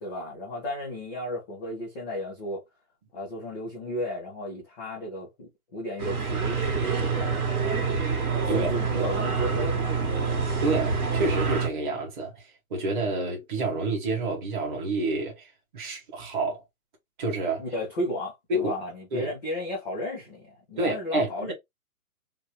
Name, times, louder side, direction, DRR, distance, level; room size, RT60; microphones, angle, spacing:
voice 1, 0.0-2.6 3.1-7.0 8.4-10.4 17.6-21.5, left 1 dB, ahead, 0.4 m, -34 dB
sound 1, 6.0-11.7, right 5 dB, 80° right, 1.5 m, -26 dB
voice 2, 8.5-9.0 10.6-12.4 12.7-15.5 15.7-16.6 17.2-17.6 18.5-18.7 19.1-19.3 20.8-21.5, right 2 dB, 35° right, 1.2 m, -28 dB
2.8 x 2.2 x 3.1 m
hypercardioid pair, 155°, 44 cm